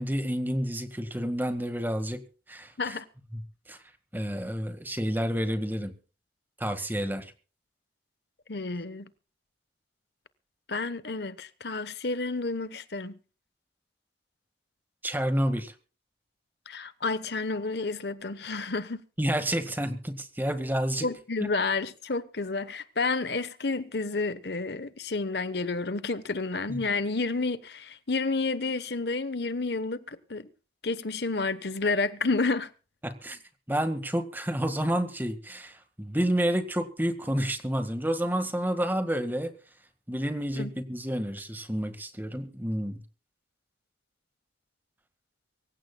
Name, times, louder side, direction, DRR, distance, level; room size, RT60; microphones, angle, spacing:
voice 1, 0.0-2.2 2.5-3.0 3.3-3.4 3.7-3.8 4.1-5.9 6.6-7.3 15.0-15.7 19.2-21.1 21.4-21.5 26.7-26.8 33.0-33.4 33.7-39.5 40.1-43.0, equal, 10° right, 1.7 m, -29 dB
voice 2, 8.5-9.1 10.7-13.2 16.7-19.0 21.0-30.5 30.8-32.7 40.5-40.7, left 3 dB, 60° left, 1.1 m, -30 dB
24.5 x 15.5 x 2.3 m
head